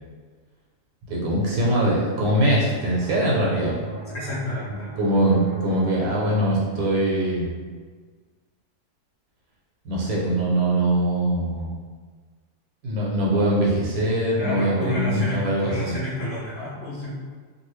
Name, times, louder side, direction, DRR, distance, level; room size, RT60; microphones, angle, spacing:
voice 1, 1.1-3.9 5.0-7.5 9.8-11.7 12.8-15.9, right 1 dB, 65° right, -4 dB, 1.1 m, -22 dB
sound 1, 2.2-7.6, right 2 dB, 45° right, 0.5 m, -39 dB
voice 2, 4.1-4.9 14.4-17.1, left 1 dB, 55° left, -8 dB, 0.7 m, -30 dB
2.7 x 2.5 x 3.1 m, 1.5 s
omnidirectional pair, 1.7 m